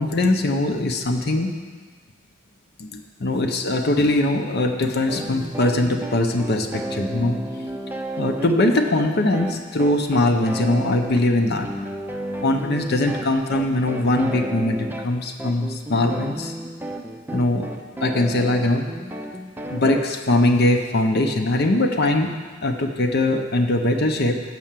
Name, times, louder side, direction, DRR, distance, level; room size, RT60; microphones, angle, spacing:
voice 1, 0.0-1.5 2.8-7.4 8.2-11.7 12.4-16.5 17.3-17.7 18.0-18.9 19.7-22.3 22.6-24.4, left 2 dB, 55° left, 4 dB, 0.7 m, -21 dB
sound 1, 5.1-20.0, right 1 dB, 10° right, 0.5 m, -32 dB
7.6 x 5.6 x 7.5 m, 1.4 s
head